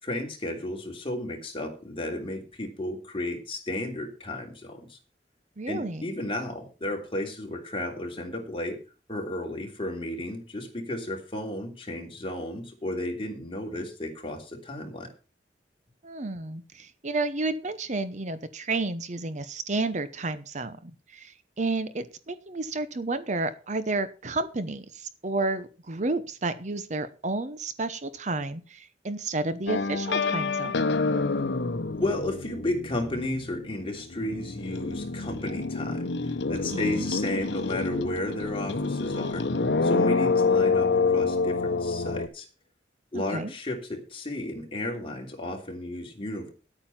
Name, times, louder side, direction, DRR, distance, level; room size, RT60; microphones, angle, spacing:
voice 1, 0.0-5.0 5.7-8.8 9.1-15.1 31.9-39.5 39.8-42.5 43.1-46.5, left 1 dB, 30° left, 2 dB, 3.1 m, -33 dB
voice 2, 5.6-6.0 16.0-30.9 36.7-36.9 43.1-43.5, right 3 dB, 45° right, 12 dB, 0.9 m, -31 dB
sound 1, 29.7-33.7 34.0-42.3, left 4 dB, 85° left, 0.8 m, -27 dB
11.0 x 8.9 x 5.9 m, 0.34 s
head